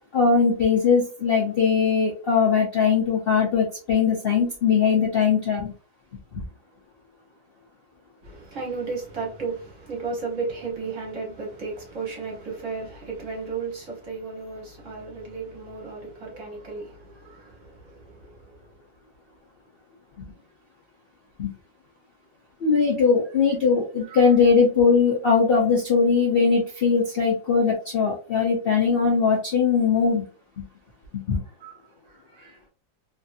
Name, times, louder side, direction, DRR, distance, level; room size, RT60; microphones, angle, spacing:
voice 1, 0.1-5.7 6.3-6.4 21.4-21.5 22.6-30.2 31.1-31.4, left 5 dB, 90° left, 0.5 m, -20 dB
voice 2, 8.2-18.6 24.0-24.3 31.6-31.8 32.3-32.6, right 4 dB, 50° right, 1.1 m, -34 dB
3.1 x 2.7 x 2.4 m
omnidirectional pair, 2.1 m